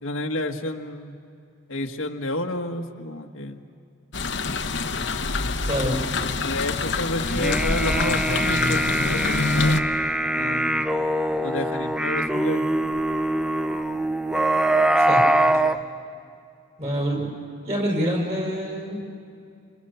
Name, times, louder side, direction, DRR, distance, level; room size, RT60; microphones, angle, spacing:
voice 1, 0.0-1.1 1.7-3.6 6.4-10.0 10.3-10.9 11.4-12.6, left 1 dB, 85° left, 3 dB, 1.6 m, -30 dB
sound 1, 4.1-9.8, left 3 dB, 60° left, 1.0 m, -26 dB
voice 2, 5.7-6.0 15.0-15.2 16.8-17.3 17.6-19.1, equal, 35° right, 0 dB, 6.1 m, -26 dB
sound 2, 7.3-15.8, right 1 dB, 5° right, 0.6 m, -23 dB
29.0 x 26.5 x 7.0 m, 2.4 s
head